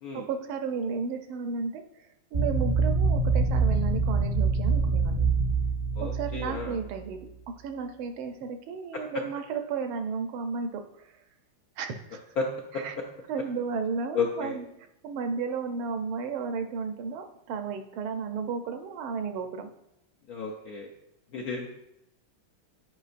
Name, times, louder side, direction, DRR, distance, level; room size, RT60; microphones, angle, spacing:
voice 1, 0.1-5.3 6.0-7.2 7.5-11.1 11.8-12.2 12.7-12.9 13.3-14.7 15.0-19.7, right 5 dB, 80° right, 7 dB, 1.5 m, -33 dB
sound 1, 2.3-7.0, right 4 dB, 45° right, 0.6 m, -25 dB
voice 2, 6.0-6.7 12.4-12.5 12.7-12.8 14.1-14.6 20.3-20.9 21.3-21.7, left 5 dB, 70° left, 0 dB, 0.9 m, -32 dB
9.6 x 5.2 x 2.5 m, 0.83 s
omnidirectional pair, 2.3 m